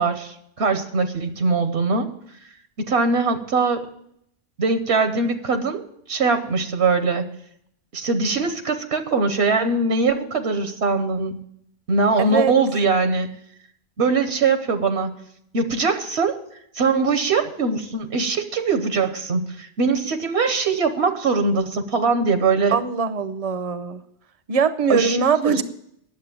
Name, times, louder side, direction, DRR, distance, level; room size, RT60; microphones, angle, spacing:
voice 1, 0.0-2.1 2.8-3.8 4.6-5.8 6.1-7.2 7.9-11.4 11.9-13.3 14.0-15.2 15.5-16.4 16.7-22.8 24.9-25.6, right 4 dB, 75° right, 8 dB, 1.2 m, -21 dB
voice 2, 12.2-12.5 22.7-24.0 24.5-25.6, right 5 dB, 40° right, 12 dB, 0.7 m, -21 dB
10.5 x 7.6 x 8.9 m, 0.72 s
omnidirectional pair, 1.1 m